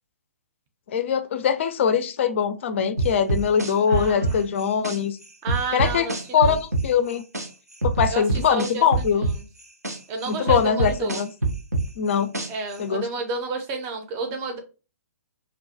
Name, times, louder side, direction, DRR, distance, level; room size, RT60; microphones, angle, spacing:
voice 1, 0.9-5.2 5.7-6.1 6.3-7.2 7.8-9.3 10.3-11.3 12.0-12.3 12.8-13.1, left 7 dB, 50° left, 10 dB, 0.4 m, -22 dB
sound 1, 3.0-5.0 5.5-7.5 7.8-10.0 10.5-12.7, right 3 dB, 85° right, 0.6 m, -25 dB
voice 2, 3.9-4.5 5.4-6.6 8.1-8.8 9.1-9.3 10.1-11.2 12.5-14.6, right 3 dB, 25° right, 4 dB, 0.6 m, -31 dB
2.5 x 2.2 x 2.6 m, 0.32 s
figure-of-eight pair, 125°, 8 cm